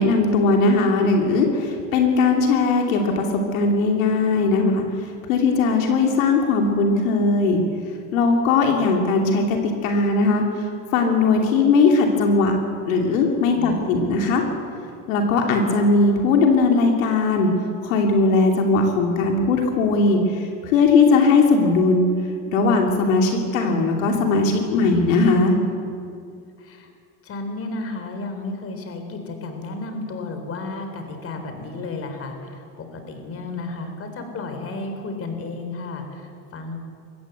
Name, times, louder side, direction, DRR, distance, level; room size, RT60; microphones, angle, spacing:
voice 1, 0.0-4.8 5.3-7.6 8.1-10.4 10.9-12.6 12.9-14.4 15.1-17.5 17.8-22.1 22.5-25.5, left 3 dB, 80° left, 2 dB, 2.8 m, -19 dB
voice 2, 26.6-26.9 27.2-36.8, left 3 dB, 35° left, 6 dB, 3.8 m, -33 dB
22.0 x 15.5 x 8.1 m, 2.4 s
supercardioid pair, 115°, 39 cm